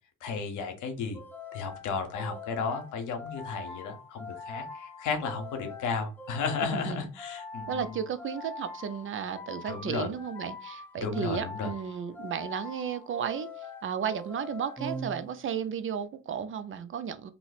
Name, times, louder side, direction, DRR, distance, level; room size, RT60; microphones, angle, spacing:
voice 1, 0.2-1.2 1.5-8.0 9.7-10.1 11.0-11.7, left 5 dB, 85° left, 0.9 m, -34 dB
sound 1, 1.1-15.7, left 3 dB, 5° left, 0.7 m, -43 dB
voice 2, 6.6-7.1 7.7-13.5 13.8-17.3, right 7 dB, 45° right, 0.4 m, -34 dB
2.7 x 2.0 x 4.0 m
cardioid pair, 90°, 30 cm